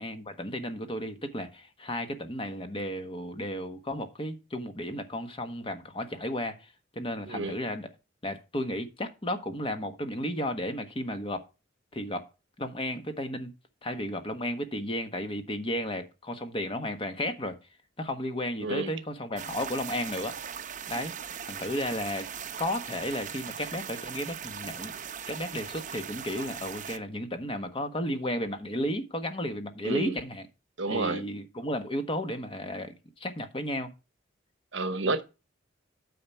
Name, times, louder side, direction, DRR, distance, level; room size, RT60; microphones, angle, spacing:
voice 1, 0.0-7.9 8.2-11.4 11.9-12.3 12.6-13.5 13.8-17.6 18.0-20.4 20.9-22.3 22.6-30.4 30.9-33.9, left 1 dB, 30° left, 1.3 m, -33 dB
voice 2, 7.3-7.6 18.6-18.9 29.8-30.1 30.8-31.2 34.7-35.2, right 3 dB, 70° right, 1.0 m, -30 dB
sound 1, 19.4-27.0, right 8 dB, 45° right, 0.7 m, -39 dB
9.2 x 5.7 x 4.5 m
head